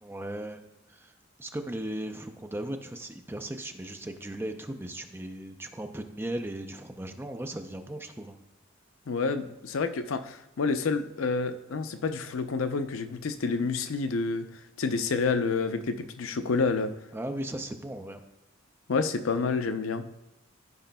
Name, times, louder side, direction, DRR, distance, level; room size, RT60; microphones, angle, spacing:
voice 1, 0.0-0.6 0.9-1.1 1.4-8.4 17.1-18.2, right 1 dB, 10° right, 6 dB, 0.5 m, -37 dB
voice 2, 9.1-14.5 14.8-16.9 18.9-20.1, left 4 dB, 80° left, 9 dB, 0.5 m, -28 dB
14.0 x 5.0 x 2.2 m, 0.92 s
head